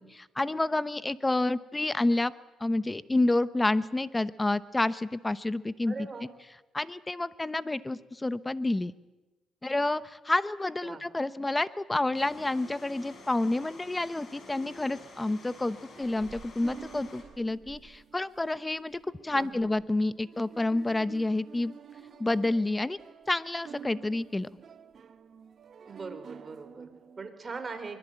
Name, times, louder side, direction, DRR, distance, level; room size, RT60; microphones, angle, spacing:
voice 1, 0.0-2.3 2.6-5.9 6.7-8.9 9.6-21.7 22.2-23.0 23.3-24.5, left 2 dB, 15° left, 15 dB, 0.9 m, -29 dB
voice 2, 5.9-6.3 10.8-11.0 19.3-19.7 25.8-28.0, right 4 dB, 30° right, 7 dB, 4.3 m, -41 dB
sound 1, 12.1-17.2, left 3 dB, 50° left, 6.6 m, -50 dB
sound 2, 14.8-27.3, right 6 dB, 50° right, 1.5 m, -50 dB
24.0 x 21.5 x 9.1 m, 1.1 s
cardioid pair, 90°, 0 cm